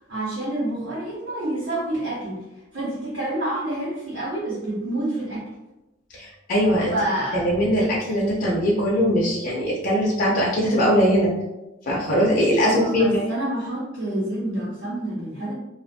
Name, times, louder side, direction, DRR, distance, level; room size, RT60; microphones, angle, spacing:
voice 1, 0.1-2.4 2.7-5.4 6.9-7.5 12.6-15.5, right 1 dB, 80° right, -9 dB, 1.2 m, -28 dB
voice 2, 6.1-6.9 7.3-11.3 11.9-13.3, equal, 45° left, -4 dB, 0.4 m, -21 dB
2.4 x 2.4 x 2.3 m, 0.98 s
head